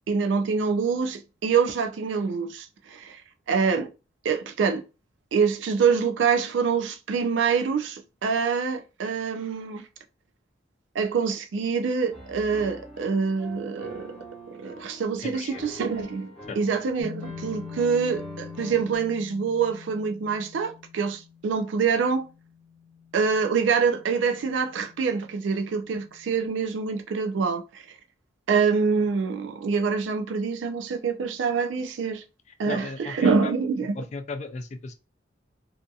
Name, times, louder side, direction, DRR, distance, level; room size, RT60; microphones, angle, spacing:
voice 1, 0.1-3.2 3.5-3.9 4.2-4.8 5.3-9.8 10.9-14.1 14.6-16.3 16.6-22.3 23.1-27.8 28.5-32.2 32.6-33.9, right 5 dB, 80° right, 0.4 m, -25 dB
Piano, 12.1-19.0, right 1 dB, ahead, 1.0 m, -44 dB
voice 2, 15.2-15.6 16.5-16.6 32.7-33.5 33.9-34.9, left 3 dB, 35° left, 0.3 m, -36 dB
sound 1, 17.0-26.5, left 7 dB, 50° right, 0.7 m, -45 dB
2.6 x 2.5 x 2.3 m
head